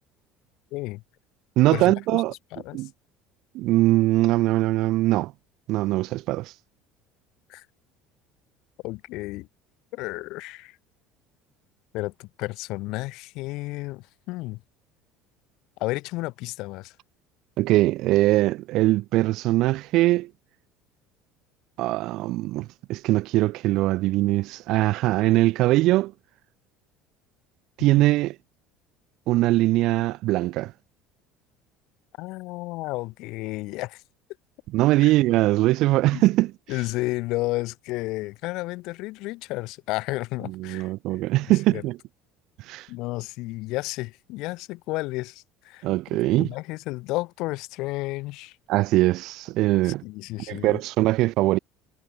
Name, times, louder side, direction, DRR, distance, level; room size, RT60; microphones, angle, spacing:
voice 1, 0.7-1.0 1.7-2.2 2.5-2.8 7.5-7.6 8.8-9.5 9.9-10.8 11.9-14.6 15.8-16.9 32.2-34.0 35.0-35.1 36.1-36.3 36.7-40.9 41.5-41.9 42.9-45.9 46.1-48.5 49.8-50.8, left 20 dB, 65° left, 6.5 m, -32 dB
voice 2, 1.6-2.3 2.7-2.9 3.5-5.3 5.7-6.5 17.6-20.3 21.8-26.1 27.8-28.3 29.3-30.7 34.7-36.5 40.6-42.0 42.7-42.9 45.8-46.5 48.7-50.0 50.5-51.6, right 17 dB, 60° right, 1.6 m, -21 dB
cardioid pair, 140°, 0 cm